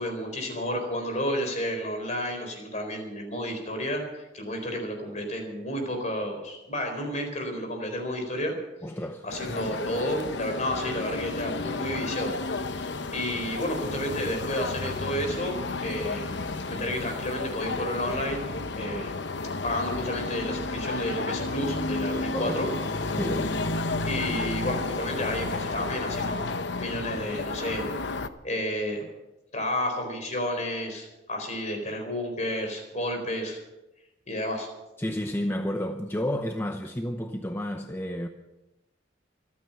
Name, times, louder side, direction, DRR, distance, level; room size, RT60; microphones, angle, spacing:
voice 1, 0.0-8.5 9.2-12.3 12.7-16.3 16.7-18.4 18.7-19.2 19.6-22.7 24.0-26.5 26.8-28.1 28.4-29.0 29.5-33.6 34.3-34.7, left 1 dB, 40° left, 4.2 m, -31 dB
voice 2, 8.8-9.6 16.7-16.8 18.8-18.9 22.1-22.6 23.1-23.6 35.0-38.3, left 1 dB, 10° left, 0.8 m, -31 dB
sound 1, 9.3-28.3, left 3 dB, 70° left, 0.9 m, -32 dB
25.5 x 9.5 x 5.8 m
head